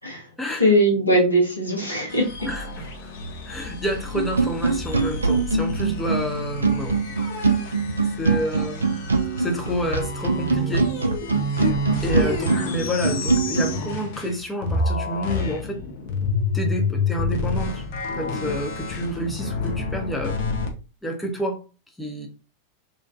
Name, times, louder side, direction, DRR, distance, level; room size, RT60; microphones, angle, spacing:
voice 1, 0.6-2.3, equal, 85° left, -3 dB, 0.9 m, -20 dB
sound 1, 2.1-14.4 14.6-20.7, left 3 dB, 50° left, 0.6 m, -29 dB
voice 2, 2.5-3.1 3.5-6.9 8.2-9.0 9.4-10.9 12.0-15.8 16.5-20.4 21.0-21.6 22.0-22.3, equal, 5° left, 1 dB, 0.6 m, -29 dB
sound 2, 4.1-13.7, right 4 dB, 75° right, 0.3 m, -23 dB
2.5 x 2.2 x 2.4 m, 0.33 s
figure-of-eight pair, 90°, 0 cm